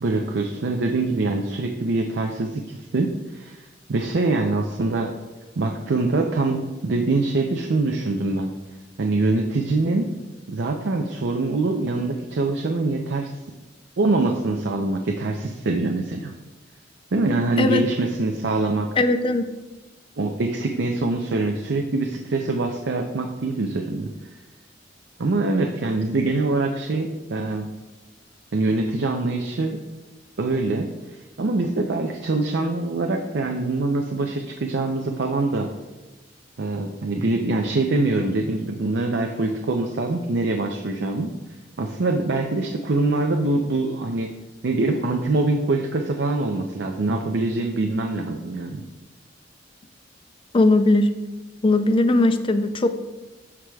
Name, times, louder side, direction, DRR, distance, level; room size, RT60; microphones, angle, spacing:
voice 1, 0.0-5.1 5.6-8.5 9.0-10.1 10.5-13.3 14.0-16.3 17.1-18.9 20.2-24.1 25.2-27.7 28.5-29.8 30.4-30.9 31.4-35.7 36.6-41.3 41.8-44.3 44.6-48.8, right 2 dB, 65° right, 2 dB, 0.5 m, -24 dB
voice 2, 19.0-19.5 50.5-51.1 51.6-52.9, left 2 dB, 30° left, 10 dB, 0.4 m, -18 dB
13.5 x 4.8 x 2.3 m, 1.1 s
head